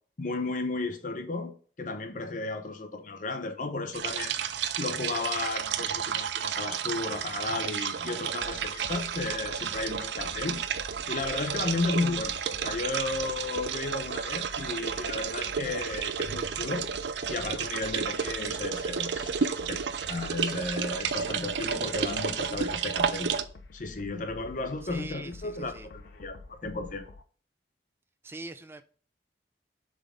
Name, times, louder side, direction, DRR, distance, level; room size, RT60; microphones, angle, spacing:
voice 1, 0.2-1.5 1.8-4.4 4.8-10.6 11.1-12.4 12.6-16.9 17.3-19.8 20.1-23.3 23.7-27.0, left 3 dB, 45° left, 0.8 m, -34 dB
sound 1, 3.9-23.4, right 7 dB, 75° right, 0.5 m, -32 dB
sound 2, 8.4-27.2, left 3 dB, 75° left, 0.6 m, -48 dB
voice 2, 24.8-25.9 28.2-28.8, right 2 dB, 15° right, 0.3 m, -43 dB
6.9 x 3.8 x 3.7 m
head